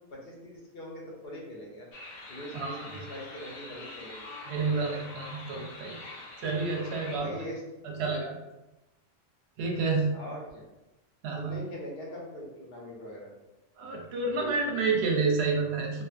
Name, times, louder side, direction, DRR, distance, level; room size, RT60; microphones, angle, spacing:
voice 1, 0.1-1.9 2.3-4.3 4.6-4.8 7.0-7.6 10.1-10.6 11.4-13.3, equal, 55° left, -2 dB, 0.8 m, -42 dB
sound 1, 1.9-7.2, left 2 dB, 85° left, 1.0 m, -45 dB
voice 2, 2.5-2.9 4.5-5.9 6.4-7.3 7.8-8.3 9.6-10.1 11.2-11.6 13.8-16.0, right 4 dB, 65° right, 1 dB, 0.7 m, -29 dB
2.5 x 2.4 x 2.4 m, 0.99 s
omnidirectional pair, 1.3 m